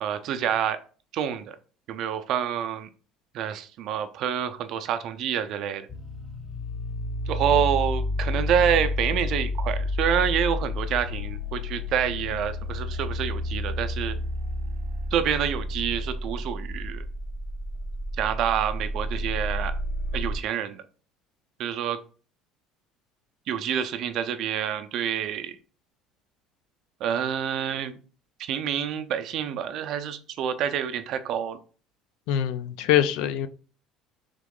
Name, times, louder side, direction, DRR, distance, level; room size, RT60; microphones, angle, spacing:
voice 1, 0.0-0.8 1.1-1.6 1.9-2.9 3.3-5.9 7.3-14.2 15.1-17.0 18.2-19.8 20.1-20.8 21.6-22.0 23.5-25.6 27.0-28.0 28.4-31.6, right 9 dB, 50° right, 0.4 m, -27 dB
sound 1, 5.9-20.4, left 1 dB, 15° left, 0.5 m, -30 dB
voice 2, 32.3-33.5, left 11 dB, 75° left, 0.4 m, -23 dB
3.6 x 3.0 x 3.6 m
cardioid pair, 170°, 0 cm